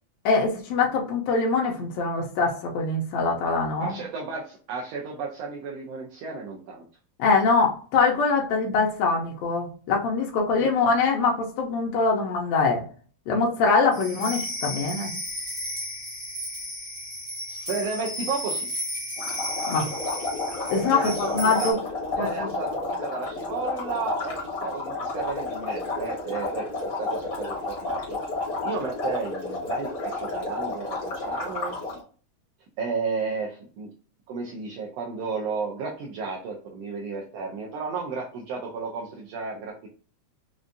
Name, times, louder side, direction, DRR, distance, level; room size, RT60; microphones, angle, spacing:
voice 1, 0.3-4.0 7.2-12.8 13.3-15.1 19.7-19.9 20.7-21.8 22.2-22.5, left 4 dB, 75° left, 0 dB, 1.8 m, -23 dB
voice 2, 3.8-6.8 10.6-10.7 17.5-18.7 20.9-21.7 22.1-28.2 28.6-31.8 32.8-33.9 34.3-39.9, right 4 dB, 75° right, -1 dB, 1.6 m, -33 dB
sound 1, 13.9-21.7, equal, 20° right, 1.0 m, -34 dB
sound 2, 19.2-32.0, left 3 dB, 50° left, 1.0 m, -31 dB
5.1 x 2.3 x 2.5 m, 0.41 s
omnidirectional pair, 3.4 m